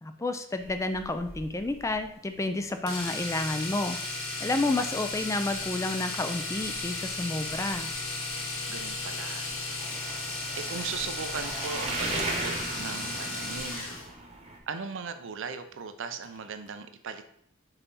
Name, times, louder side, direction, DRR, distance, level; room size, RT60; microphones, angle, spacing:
voice 1, 0.0-4.0 4.4-7.9, left 2 dB, 15° left, 8 dB, 0.3 m, -30 dB
sound 1, 0.6-14.6, right 2 dB, 30° right, 1.0 m, -40 dB
Domestic sounds home sounds, 2.9-14.1 16.2-16.4 16.7-16.8, left 3 dB, 65° left, 1.3 m, -35 dB
voice 2, 8.7-9.5 10.5-13.9 14.7-17.3, right 5 dB, 60° right, 8 dB, 0.6 m, -38 dB
5.6 x 4.1 x 4.0 m, 0.68 s
head